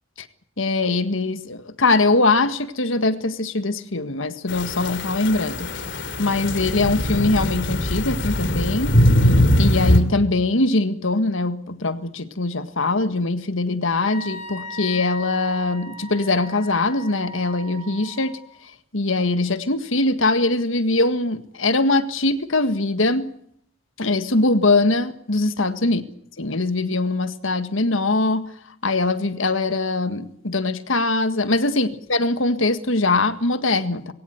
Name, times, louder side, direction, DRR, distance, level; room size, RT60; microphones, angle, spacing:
voice 1, 0.6-5.7 6.2-9.0 9.6-18.4 18.9-23.3 24.0-26.0 26.4-28.5 28.8-34.1, left 2 dB, 80° left, 1.7 m, -22 dB
sound 1, 4.5-10.0, left 1 dB, 65° left, 3.2 m, -21 dB
Wind instrument woodwind instrument, 14.0-18.5, left 1 dB, 35° left, 2.6 m, -37 dB
22.0 x 17.0 x 9.4 m
head